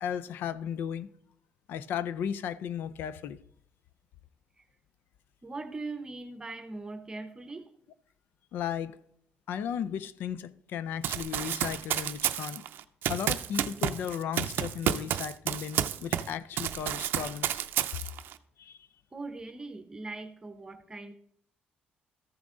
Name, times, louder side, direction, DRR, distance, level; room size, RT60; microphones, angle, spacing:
voice 1, 0.0-1.1 1.7-3.4 8.5-9.0 9.5-12.6 13.1-17.6 18.6-18.8, left 8 dB, 75° left, 0.5 m, -35 dB
voice 2, 5.4-7.7 19.1-21.1, right 3 dB, 20° right, 0.8 m, -40 dB
Run, 11.0-16.3 16.6-18.3, right 11 dB, 75° right, 0.5 m, -30 dB
14.0 x 6.0 x 3.7 m
cardioid pair, 125°, 4 cm